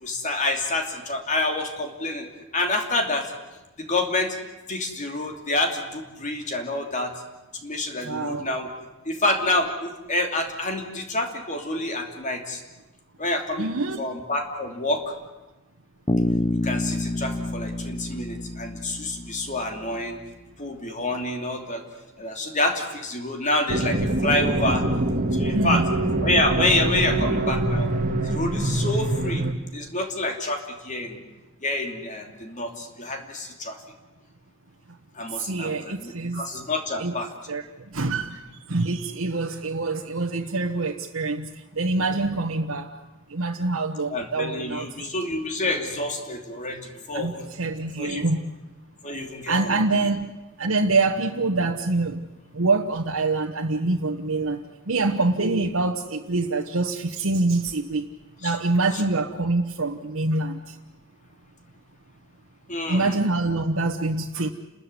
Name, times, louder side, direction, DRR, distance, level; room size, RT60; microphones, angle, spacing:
voice 1, 0.0-2.3 2.5-3.3 3.8-4.4 4.7-7.1 7.6-8.7 9.0-12.6 13.2-13.7 14.0-15.0 16.6-20.2 20.6-21.8 22.2-24.8 25.3-25.8 26.2-27.9 28.2-29.4 29.7-31.2 31.6-33.8 35.1-37.3 44.1-47.5 48.0-48.3 49.0-49.7 58.4-58.5 62.7-63.2, left 2 dB, 35° left, 4 dB, 2.9 m, -27 dB
voice 2, 8.0-8.5 13.6-14.2 25.5-25.9 35.3-36.4 37.0-37.1 37.5-43.0 43.3-45.1 47.1-48.5 49.5-52.3 52.5-58.1 58.4-60.8 62.9-64.5, right 3 dB, 90° right, 1 dB, 1.2 m, -25 dB
Bass guitar, 16.1-20.0, left 1 dB, 20° left, 0.8 m, -28 dB
sound 1, 23.7-29.5, right 1 dB, 40° right, 1.7 m, -24 dB
29.5 x 14.0 x 9.7 m, 1.1 s
head